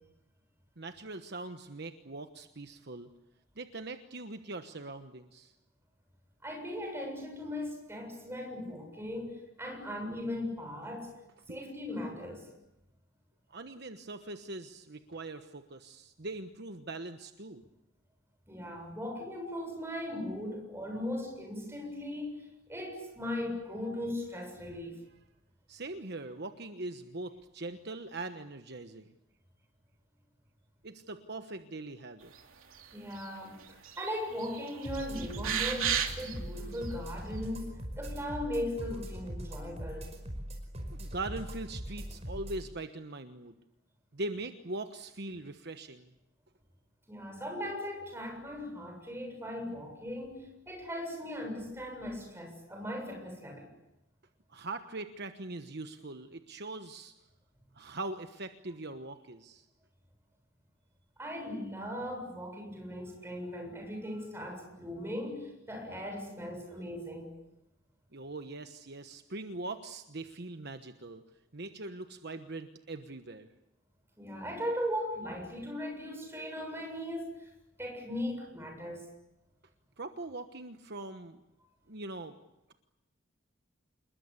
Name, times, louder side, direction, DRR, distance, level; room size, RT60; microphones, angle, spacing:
voice 1, 0.8-3.1 3.6-5.5 11.5-11.6 13.5-17.6 25.7-29.0 30.8-32.3 40.9-43.6 44.1-46.1 54.5-57.1 57.7-59.6 68.1-71.2 71.5-73.5 80.0-81.4 81.9-82.4, right 2 dB, 55° right, 8 dB, 1.2 m, -41 dB
voice 2, 6.4-11.1 11.5-12.5 18.5-25.0 32.9-40.1 47.1-53.7 61.2-67.3 74.2-77.5 77.8-79.1, left 1 dB, 10° right, 3 dB, 7.2 m, -38 dB
sound 1, 32.8-33.4 33.7-34.1 34.4-36.4 36.9-37.0, right 8 dB, 80° right, 3.0 m, -33 dB
sound 2, 34.8-42.6, equal, 30° right, 5.1 m, -41 dB
27.5 x 21.5 x 8.4 m, 0.90 s
head